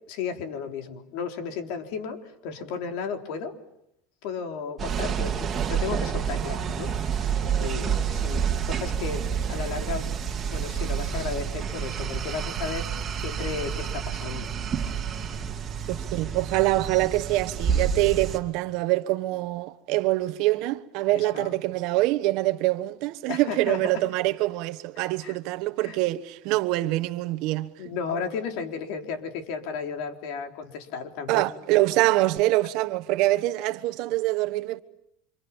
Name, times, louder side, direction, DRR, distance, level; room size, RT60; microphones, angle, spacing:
voice 1, 0.1-3.5 4.2-12.9 13.2-14.5 15.0-15.3 21.1-21.5 23.3-23.8 25.0-25.3 25.8-26.0 27.8-31.4, left 6 dB, 60° left, 3.8 m, -34 dB
sound 1, 4.8-18.4, right 7 dB, 20° right, 2.7 m, -29 dB
voice 2, 15.9-27.8 31.3-34.8, right 18 dB, 55° right, 1.2 m, -25 dB
30.0 x 27.0 x 7.3 m
cardioid pair, 160°, 0 cm